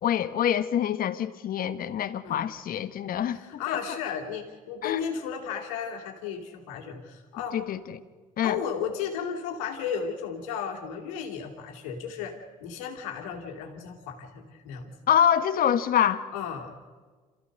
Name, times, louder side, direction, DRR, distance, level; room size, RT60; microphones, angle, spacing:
voice 1, 0.0-3.8 4.8-5.0 7.5-8.0 8.4-8.6 15.1-16.2, left 9 dB, 60° left, 12 dB, 1.3 m, -26 dB
voice 2, 3.3-7.6 8.4-14.9 16.3-16.7, left 7 dB, 85° left, 2 dB, 2.8 m, -34 dB
27.5 x 15.0 x 6.6 m, 1.5 s
hypercardioid pair, 60°, 17 cm